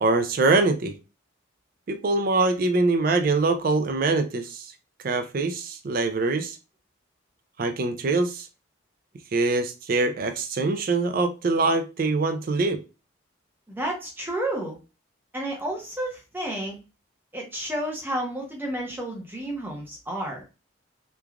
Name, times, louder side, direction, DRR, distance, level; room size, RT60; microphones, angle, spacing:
voice 1, 0.0-0.9 1.9-4.7 5.0-6.6 7.6-8.5 9.3-12.8, right 3 dB, 45° right, 0.3 m, -23 dB
voice 2, 13.7-14.8 15.3-16.8 17.3-20.4, right 1 dB, 10° right, 0.6 m, -31 dB
3.1 x 2.3 x 2.3 m
head